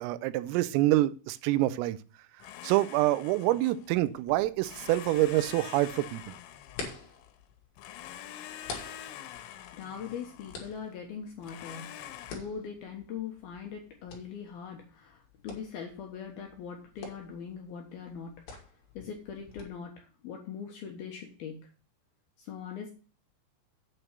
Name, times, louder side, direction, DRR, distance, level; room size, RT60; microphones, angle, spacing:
voice 1, 0.0-2.0 2.6-6.4, right 16 dB, 85° right, 3.3 m, -26 dB
Domestic sounds home sounds, 2.4-4.1 4.6-7.4 7.8-10.8 11.4-12.4, left 11 dB, 90° left, 3.4 m, -46 dB
sound 1, 4.1-19.6, left 4 dB, 50° left, 3.5 m, -48 dB
voice 2, 9.7-11.9 12.3-18.4 19.0-21.7 22.4-22.9, left 7 dB, 70° left, 2.4 m, -41 dB
8.7 x 6.0 x 6.6 m
omnidirectional pair, 5.9 m